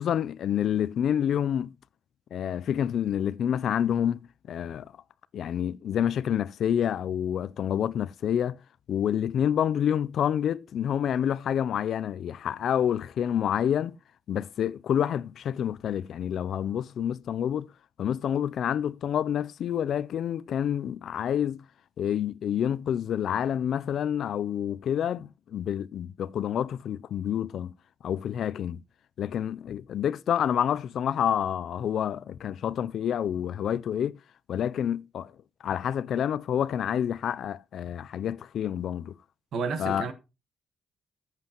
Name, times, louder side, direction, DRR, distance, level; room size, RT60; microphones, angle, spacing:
voice 1, 0.0-1.7 2.3-4.2 4.5-4.9 5.3-8.6 8.9-14.0 14.3-17.7 18.0-21.6 22.0-27.7 28.0-28.8 29.2-34.2 34.5-35.3 35.6-39.1 39.8-40.1, left 9 dB, 60° left, 0.4 m, -28 dB
voice 2, 39.5-40.1, right 5 dB, 65° right, 1.4 m, -30 dB
14.0 x 7.6 x 3.0 m
cardioid pair, 150°, 0 cm